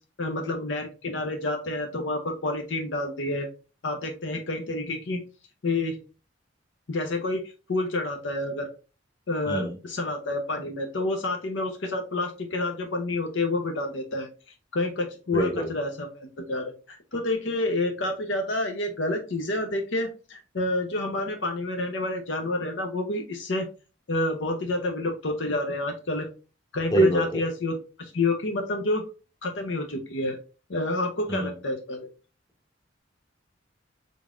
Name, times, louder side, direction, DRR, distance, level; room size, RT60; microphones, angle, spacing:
voice 1, 0.2-3.5 3.8-5.2 5.6-6.0 6.9-7.4 7.7-8.7 9.3-14.3 14.7-23.7 24.1-26.3 26.7-29.0 29.4-30.4 30.7-32.1, left 2 dB, 70° left, 4 dB, 0.7 m, -29 dB
voice 2, 15.3-15.7 26.9-27.4 31.3-31.5, right 1 dB, 20° left, 1 dB, 1.1 m, -23 dB
3.9 x 3.5 x 2.5 m, 0.33 s
head